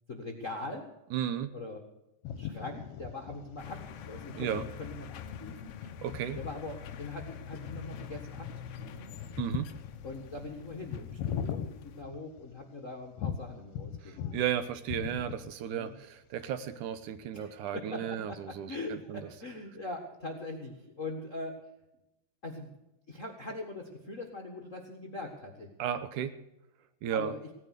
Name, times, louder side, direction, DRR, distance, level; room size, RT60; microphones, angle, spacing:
voice 1, 0.1-0.9 1.5-1.8 2.2-5.8 6.3-9.1 10.0-14.3 15.6-15.9 17.3-21.6 22.4-22.8 23.1-25.7 27.1-27.5, left 2 dB, 40° left, 2 dB, 1.1 m, -42 dB
voice 2, 1.1-1.5 4.4-4.7 6.0-6.4 9.4-9.7 14.0-19.2 25.8-26.3 27.0-27.3, right 9 dB, 75° right, 12 dB, 2.2 m, -34 dB
sound 1, 2.2-12.6 13.2-14.5 14.8-15.6, left 8 dB, 70° left, 2.0 m, -40 dB
sound 2, 3.6-12.0, left 8 dB, 85° left, 1.2 m, -46 dB
17.0 x 10.0 x 6.6 m, 0.91 s
omnidirectional pair, 3.9 m